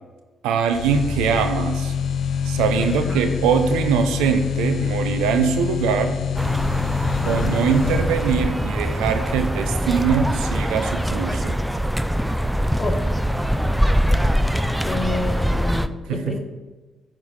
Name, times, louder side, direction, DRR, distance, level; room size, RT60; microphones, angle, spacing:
voice 1, 0.4-1.9 2.4-6.2 7.2-11.6 16.1-16.4, right 6 dB, 80° right, 7 dB, 0.7 m, -22 dB
sound 1, 0.7-8.7, left 7 dB, 60° left, 0.5 m, -26 dB
sound 2, 6.4-15.9, equal, 5° right, 0.5 m, -23 dB
voice 2, 7.0-7.6 12.8-13.0 14.8-16.4, left 2 dB, 40° left, 5 dB, 1.3 m, -29 dB
9.6 x 3.9 x 6.6 m, 1.3 s
hypercardioid pair, 45°, 0 cm